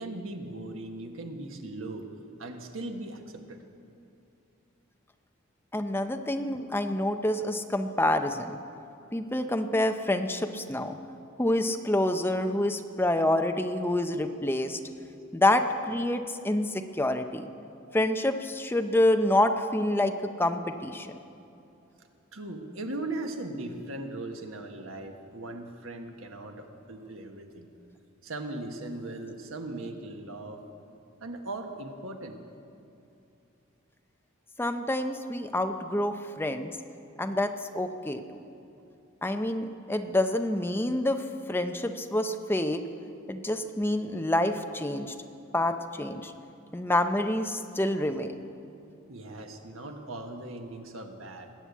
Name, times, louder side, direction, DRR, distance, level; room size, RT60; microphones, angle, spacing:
voice 1, 0.0-2.1 2.4-3.6 22.3-27.7 28.2-30.6 31.2-32.4 49.1-51.5, right 2 dB, 80° right, 4 dB, 1.5 m, -39 dB
voice 2, 5.7-8.6 9.1-11.0 11.4-14.8 15.3-17.5 17.9-21.1 34.6-36.7 37.2-38.2 39.2-41.2 41.5-42.8 43.3-45.1 45.5-46.3 46.7-48.3, left 1 dB, 10° left, 7 dB, 0.6 m, -27 dB
20.0 x 8.7 x 8.3 m, 2.7 s
head